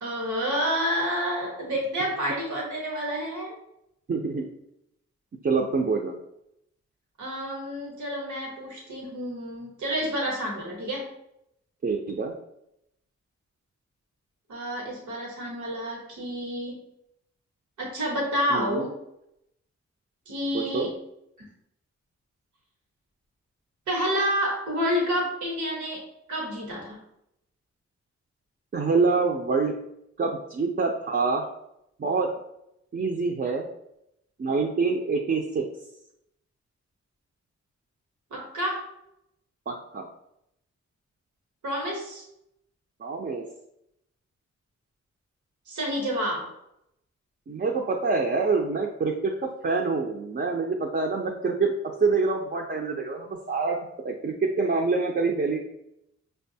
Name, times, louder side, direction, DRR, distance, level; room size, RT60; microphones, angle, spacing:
voice 1, 0.0-3.6 7.2-11.1 14.5-16.8 17.8-19.0 20.3-20.9 21.4-21.5 23.9-27.0 38.3-38.9 41.6-42.3 45.7-46.5, equal, 90° right, -2 dB, 1.0 m, -29 dB
voice 2, 4.1-4.5 5.4-6.1 11.8-12.3 18.5-18.9 20.5-20.9 28.7-29.8 30.2-31.4 32.0-32.3 32.9-33.7 34.4-35.6 39.7-40.1 43.0-43.4 47.5-51.7 52.0-53.8 54.0-55.6, right 4 dB, 35° right, -1 dB, 0.5 m, -26 dB
5.3 x 2.2 x 2.7 m, 0.79 s
cardioid pair, 60°, 29 cm